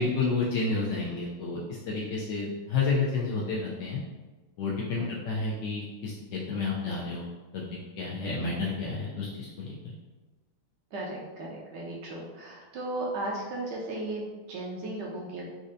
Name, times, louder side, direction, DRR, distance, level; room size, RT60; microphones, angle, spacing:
voice 1, 0.0-1.6 1.9-4.0 4.6-7.2 7.5-7.6 8.0-9.7, left 4 dB, 85° left, -4 dB, 0.9 m, -30 dB
voice 2, 10.9-15.5, right 1 dB, 75° right, -3 dB, 1.0 m, -36 dB
4.2 x 2.5 x 2.5 m, 1.2 s
omnidirectional pair, 2.4 m